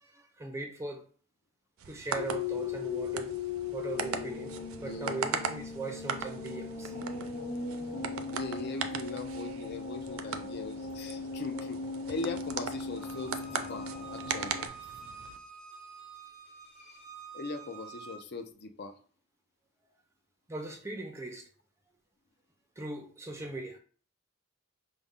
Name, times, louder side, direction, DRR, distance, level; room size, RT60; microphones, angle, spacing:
voice 1, 0.0-1.0 1.9-3.4 3.7-6.9 20.5-21.5 22.8-23.8, right 3 dB, 15° right, 0.4 m, -39 dB
sound 1, 1.8-15.4, right 6 dB, 75° right, 0.4 m, -40 dB
sound 2, 2.1-14.7, left 5 dB, 90° left, 0.8 m, -38 dB
voice 2, 4.8-5.2 8.3-11.8 12.1-14.6 17.3-18.9, left 3 dB, 50° left, 0.5 m, -40 dB
Bowed string instrument, 12.9-18.2, right 5 dB, 30° left, 1.2 m, -48 dB
5.2 x 2.1 x 3.5 m
head